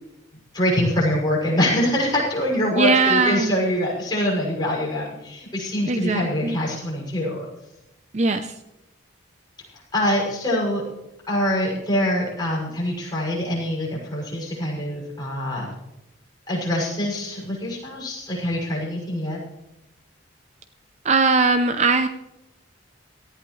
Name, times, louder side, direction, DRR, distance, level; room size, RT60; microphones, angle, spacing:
voice 1, 0.5-7.4 9.9-10.8 11.3-15.7 16.5-19.4, left 1 dB, 20° left, -5 dB, 6.5 m, -24 dB
voice 2, 2.7-3.6 5.9-6.6 8.1-8.5 21.0-22.1, right 3 dB, 35° right, 9 dB, 0.6 m, -20 dB
18.0 x 14.0 x 3.2 m, 0.90 s
head